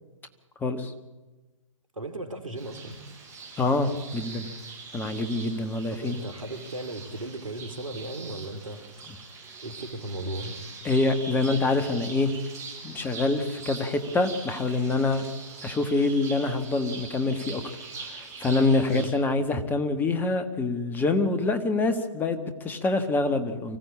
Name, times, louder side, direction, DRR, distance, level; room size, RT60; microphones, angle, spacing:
voice 1, 0.6-0.9 3.6-4.5 4.9-6.2 10.8-12.3 12.8-15.2 15.6-17.6 18.1-23.8, left 3 dB, 10° left, 9 dB, 1.5 m, -25 dB
voice 2, 1.9-3.0 5.9-8.8 9.6-10.5 18.9-19.1, right 2 dB, 80° right, 9 dB, 3.0 m, -36 dB
sound 1, 2.6-19.1, right 4 dB, 15° right, 6.8 m, -43 dB
24.5 x 15.5 x 8.6 m, 1.2 s
figure-of-eight pair, 125°, 17 cm